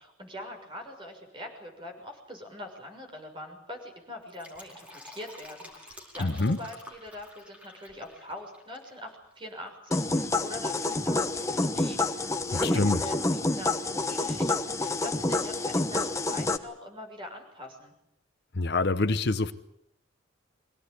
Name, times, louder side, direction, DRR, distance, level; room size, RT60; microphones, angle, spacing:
voice 1, 0.0-17.9, left 1 dB, 25° right, 3 dB, 6.5 m, -43 dB
Fill (with liquid), 4.1-8.9 9.2-9.3, left 1 dB, 5° right, 4.7 m, -49 dB
voice 2, 6.2-6.6 12.5-13.0 18.5-19.5, left 2 dB, 55° left, 12 dB, 0.9 m, -26 dB
sound 1, 9.9-16.6, left 2 dB, 15° left, 1.1 m, -28 dB
24.0 x 18.0 x 9.9 m, 0.78 s
head